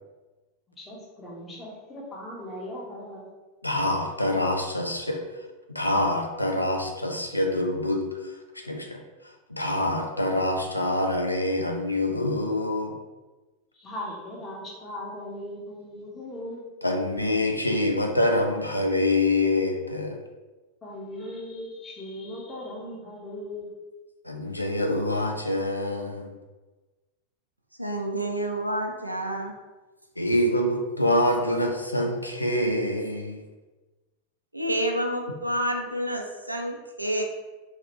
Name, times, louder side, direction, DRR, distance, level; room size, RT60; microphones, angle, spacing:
voice 1, 0.8-3.3 13.7-16.6 20.8-23.7, left 1 dB, 20° left, -4 dB, 0.9 m, -38 dB
voice 2, 3.6-5.2 5.7-8.0 8.6-9.0 9.5-12.9 16.8-20.1 24.3-26.3 30.2-33.4, left 1 dB, 85° left, 3 dB, 0.3 m, -25 dB
voice 3, 27.8-29.5 34.5-37.2, right 1 dB, 85° right, 2 dB, 0.4 m, -29 dB
2.8 x 2.5 x 3.0 m, 1.2 s
figure-of-eight pair, 90°, 0 cm